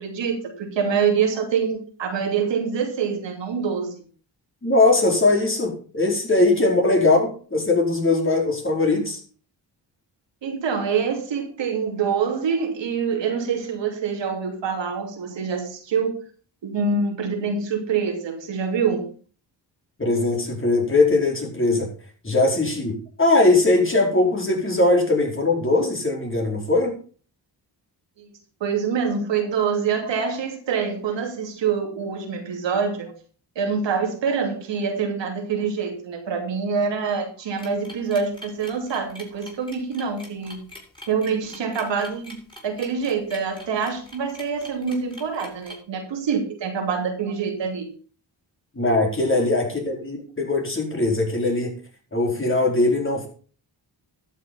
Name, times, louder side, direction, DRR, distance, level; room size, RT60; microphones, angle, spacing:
voice 1, 0.0-3.9 10.4-16.1 16.6-19.1 28.2-28.3 28.6-33.1 33.6-40.6 41.1-47.9, right 6 dB, 85° right, 3 dB, 2.8 m, -25 dB
voice 2, 4.6-9.2 20.0-21.9 22.2-27.0 48.7-51.7 52.1-53.3, left 2 dB, 30° left, 1 dB, 4.8 m, -20 dB
sound 1, 37.6-45.8, left 1 dB, 10° left, 6.2 m, -43 dB
12.0 x 7.4 x 5.6 m, 0.40 s
cardioid pair, 65°, 43 cm